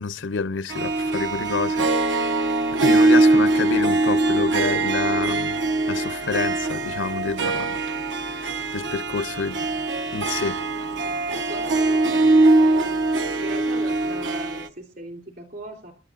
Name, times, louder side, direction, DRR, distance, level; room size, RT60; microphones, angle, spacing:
voice 1, 0.0-1.9 2.8-5.6 5.9-7.8 8.7-9.7 10.1-10.6, left 4 dB, 85° left, 0.7 m, -28 dB
Harp, 0.7-14.7, right 2 dB, 85° right, 1.1 m, -22 dB
voice 2, 10.7-11.1 11.5-13.0 13.3-15.9, right 1 dB, 55° right, 3.1 m, -38 dB
28.5 x 11.0 x 2.5 m
head